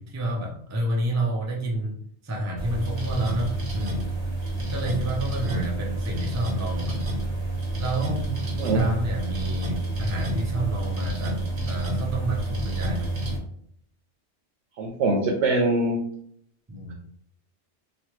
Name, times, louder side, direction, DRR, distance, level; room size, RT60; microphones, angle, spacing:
voice 1, 0.0-2.0 2.2-4.0 4.7-7.1 7.8-11.4 11.7-13.1 16.7-16.9, right 1 dB, 20° right, -1 dB, 0.4 m, -29 dB
sound 1, 2.6-13.4, right 1 dB, 70° right, 1.2 m, -29 dB
voice 2, 14.8-16.0, right 2 dB, 85° right, -1 dB, 0.9 m, -23 dB
3.1 x 2.3 x 3.0 m, 0.66 s
omnidirectional pair, 1.2 m